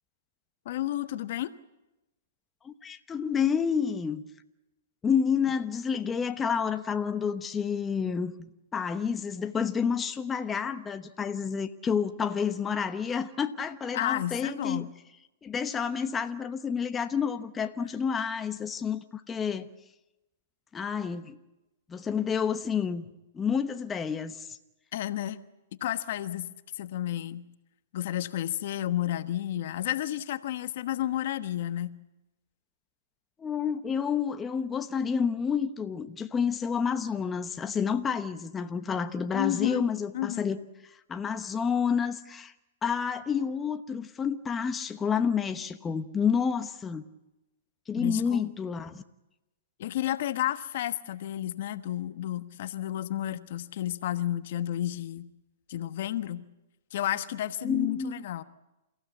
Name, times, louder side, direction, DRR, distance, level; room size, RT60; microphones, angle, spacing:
voice 1, 0.6-1.5 13.9-14.9 24.9-25.4 25.8-26.5 26.8-27.4 27.9-31.9 39.3-39.8 40.1-40.5 48.0-48.5 49.8-55.3 55.7-56.4 56.9-58.4, left 13 dB, 60° left, 11 dB, 1.2 m, -31 dB
voice 2, 2.6-4.2 5.0-14.9 15.4-19.7 20.7-21.4 21.9-23.0 23.3-24.6 33.4-42.5 42.8-47.0 47.9-49.0 57.6-58.2, left 6 dB, 15° left, 8 dB, 1.0 m, -29 dB
29.0 x 16.0 x 8.3 m, 1.0 s
hypercardioid pair, 135°, 0 cm